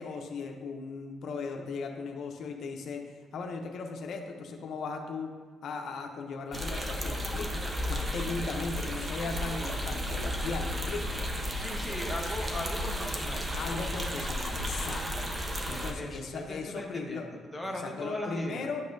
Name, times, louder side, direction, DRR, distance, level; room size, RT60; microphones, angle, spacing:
voice 1, 0.0-3.0 3.3-5.3 5.6-7.6 7.9-11.2 13.6-15.0 15.7-17.3 17.6-18.8, left 4 dB, 70° left, 2 dB, 0.6 m, -37 dB
sound 1, 6.5-15.9, equal, 25° right, 0.8 m, -33 dB
voice 2, 11.6-13.5 15.9-18.7, left 1 dB, 5° left, -1 dB, 1.1 m, -38 dB
9.6 x 5.4 x 2.6 m, 1.5 s
cardioid pair, 90°, 0 cm